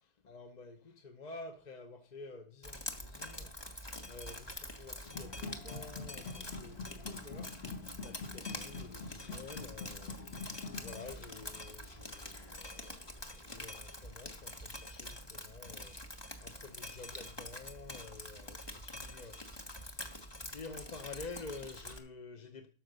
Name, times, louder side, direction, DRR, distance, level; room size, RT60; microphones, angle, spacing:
voice 1, 0.0-3.6 4.0-7.6 8.0-13.0 13.4-22.7, left 3 dB, 40° left, 0.8 m, -50 dB
Drip, 2.6-22.0, left 1 dB, 20° left, 1.3 m, -46 dB
sound 1, 5.0-13.9, left 4 dB, 55° left, 1.9 m, -47 dB
12.5 x 5.0 x 6.7 m
omnidirectional pair, 1.3 m